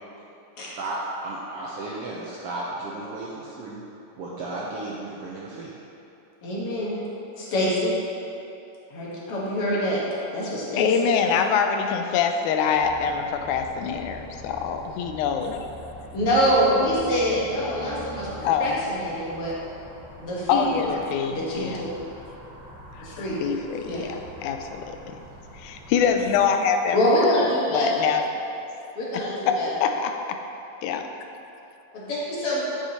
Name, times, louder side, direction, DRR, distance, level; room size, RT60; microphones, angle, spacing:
voice 1, 0.6-1.0 1.2-3.8 4.2-5.7, right 2 dB, 75° right, -6 dB, 1.4 m, -34 dB
voice 2, 6.4-7.0 7.4-7.9 8.9-10.0 10.3-10.9 16.1-19.5 20.2-20.9 21.3-21.9 23.0-23.4 23.9-24.0 26.9-27.9 29.0-29.7 31.9-32.6, equal, 55° left, -6 dB, 1.9 m, -25 dB
voice 3, 10.8-15.9 18.4-18.8 20.5-21.9 23.0-25.2 25.5-27.0 27.4-27.5 27.7-28.2 29.1-30.4 30.8-31.1, left 7 dB, 85° left, 5 dB, 2.0 m, -25 dB
sound 1, 12.7-26.4, equal, 50° right, 2.5 m, -44 dB
9.9 x 6.2 x 2.8 m, 2.8 s
omnidirectional pair, 3.4 m